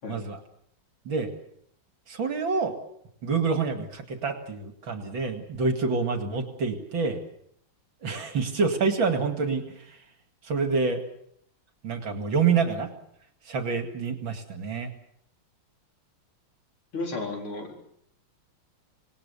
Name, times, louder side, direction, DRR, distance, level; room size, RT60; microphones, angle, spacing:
voice 1, 0.1-0.4 1.1-1.3 2.1-2.7 3.2-7.2 8.0-10.0 10.4-11.0 11.8-12.9 13.5-14.9, right 5 dB, 65° right, 6 dB, 2.9 m, -27 dB
voice 2, 16.9-17.8, left 2 dB, 80° left, 1 dB, 5.2 m, -33 dB
26.5 x 19.5 x 6.9 m, 0.70 s
omnidirectional pair, 2.3 m